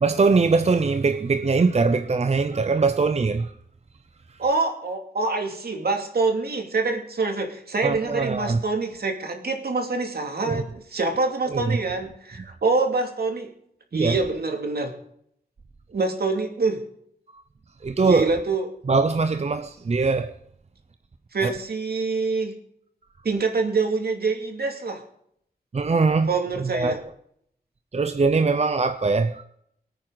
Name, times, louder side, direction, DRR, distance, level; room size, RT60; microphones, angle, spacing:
voice 1, 0.0-3.5 7.8-8.6 10.4-10.6 11.5-11.8 13.9-14.2 17.8-18.3 18.9-20.3 21.4-21.5 25.7-27.0 27.9-29.4, right 4 dB, 40° right, 0.7 m, -22 dB
voice 2, 4.4-13.5 13.9-14.9 15.9-16.8 18.0-18.7 21.3-22.5 23.2-25.0 26.3-27.0, right 3 dB, 70° right, 2.7 m, -25 dB
23.0 x 9.2 x 4.0 m
wide cardioid pair, 105°, 17 cm